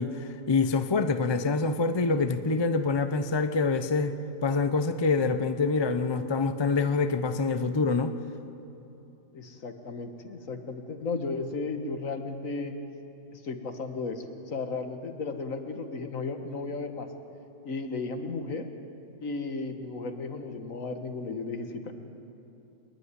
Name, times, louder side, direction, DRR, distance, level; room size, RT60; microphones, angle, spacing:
voice 1, 0.0-4.1 4.4-8.2, left 4 dB, 35° left, 9 dB, 0.4 m, -26 dB
voice 2, 9.3-12.7 13.3-17.1 17.6-18.7 19.2-21.9, left 3 dB, 60° left, 6 dB, 1.7 m, -34 dB
26.0 x 11.5 x 9.7 m, 2.9 s
omnidirectional pair, 1.7 m